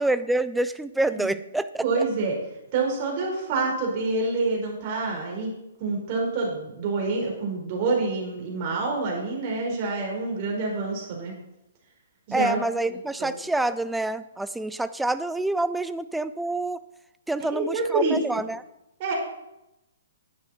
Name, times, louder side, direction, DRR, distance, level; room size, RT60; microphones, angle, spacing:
voice 1, 0.0-2.0 12.3-16.8 17.3-18.6, right 2 dB, 5° right, 13 dB, 0.4 m, -27 dB
voice 2, 1.8-2.4 2.7-5.5 5.8-11.3 12.3-12.6 13.2-13.3 17.5-18.2 19.0-19.1, right 3 dB, 40° right, -1 dB, 4.3 m, -27 dB
10.5 x 9.8 x 4.2 m, 0.90 s
hypercardioid pair, 145°, 0 cm